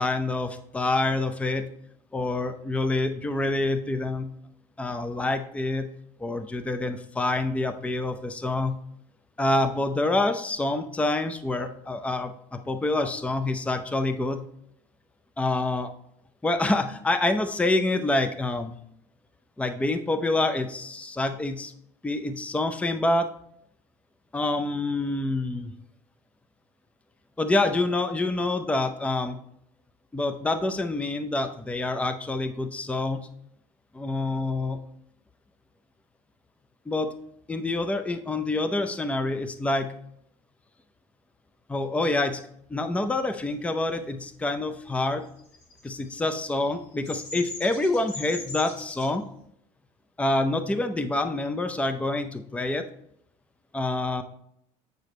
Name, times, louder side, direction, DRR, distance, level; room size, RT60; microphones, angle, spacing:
voice 1, 0.0-1.6 2.1-4.3 4.8-5.9 6.2-8.8 9.4-14.4 15.4-15.9 16.4-18.8 19.6-21.7 22.0-23.3 24.3-25.7 27.4-29.4 30.1-33.3 33.9-34.8 36.9-37.1 37.5-39.9 41.7-42.4 42.7-45.3 45.8-49.2 50.2-52.8 53.7-54.2, left 2 dB, 10° left, 8 dB, 0.5 m, -27 dB
Bird vocalization bird call bird song, 45.4-49.1, left 3 dB, 85° left, 2.0 m, -39 dB
7.9 x 4.8 x 3.1 m, 0.71 s
supercardioid pair, 95°, 14 cm